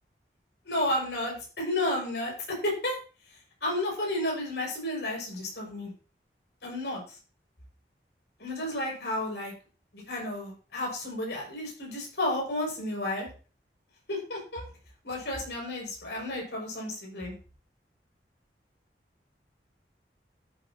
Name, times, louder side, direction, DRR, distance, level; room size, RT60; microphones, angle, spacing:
voice 1, 0.7-2.9 3.6-5.9 6.6-7.0 8.4-9.5 9.9-13.3 14.1-14.6 15.0-17.3, left 1 dB, 80° left, -1 dB, 6.0 m, -32 dB
13.5 x 8.2 x 2.8 m, 0.36 s
head